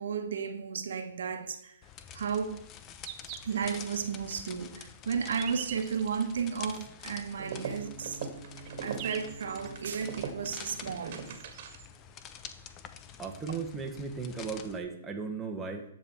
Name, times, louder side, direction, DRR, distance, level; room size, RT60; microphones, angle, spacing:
voice 1, 0.0-1.7 2.1-2.6 3.4-8.2 8.8-11.2, right 6 dB, 75° right, 1.4 m, -33 dB
sound 1, 1.6-1.7 2.6-2.7 3.0-3.7 4.2-4.3 5.1-6.3 7.2-7.3 7.9-8.0 8.3-9.7 10.8-10.9 11.1-11.9 13.3-13.4 13.6-13.7 14.4-14.5, right 10 dB, 30° right, 1.0 m, -44 dB
sound 2, 1.8-14.8, left 8 dB, 25° left, 0.8 m, -48 dB
sound 3, 7.3-12.0, right 6 dB, 45° right, 1.7 m, -41 dB
voice 2, 13.2-15.8, right 5 dB, 10° right, 1.4 m, -36 dB
10.5 x 7.2 x 4.5 m
hypercardioid pair, 145°, 0 cm